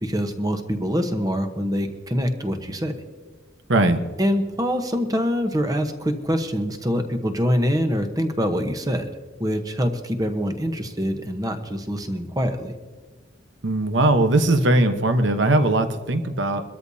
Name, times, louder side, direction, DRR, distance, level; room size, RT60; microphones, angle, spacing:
voice 1, 0.0-2.9 4.2-9.1 9.4-12.7, equal, 20° right, 7 dB, 1.0 m, -24 dB
voice 2, 13.6-16.6, right 2 dB, 65° right, 8 dB, 1.1 m, -19 dB
22.5 x 13.0 x 2.8 m, 1.3 s
head